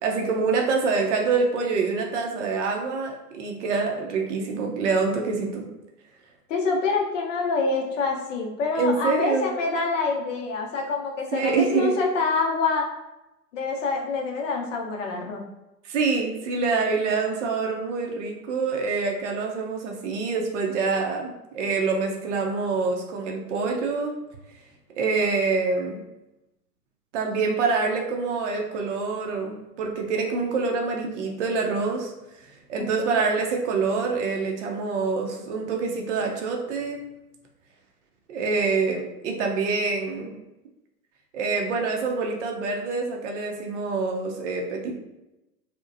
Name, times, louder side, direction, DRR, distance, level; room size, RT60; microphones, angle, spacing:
voice 1, 0.0-5.7 8.8-9.5 11.3-11.9 15.8-24.2 25.0-26.0 27.1-32.1 32.7-37.0 38.3-40.3 41.3-45.0, right 4 dB, 50° right, 1 dB, 0.5 m, -26 dB
voice 2, 6.5-12.9 13.5-15.4 32.8-33.2, left 4 dB, 50° left, 0 dB, 0.7 m, -26 dB
2.8 x 2.1 x 2.5 m, 0.96 s
figure-of-eight pair, 115°, 49 cm